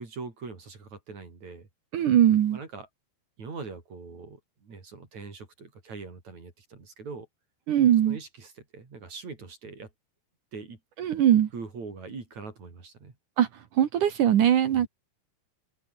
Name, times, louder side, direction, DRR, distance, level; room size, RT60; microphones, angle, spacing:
voice 1, 0.0-1.7 2.5-2.9 3.4-7.3 8.1-9.9 10.5-10.8 11.5-13.1 14.6-14.9, right 4 dB, 45° right, 5.8 m, -42 dB
voice 2, 1.9-2.6 7.7-8.2 11.0-11.5 13.4-13.5 13.7-14.9, right 10 dB, 60° right, 2.5 m, -21 dB
omnidirectional pair, 4.8 m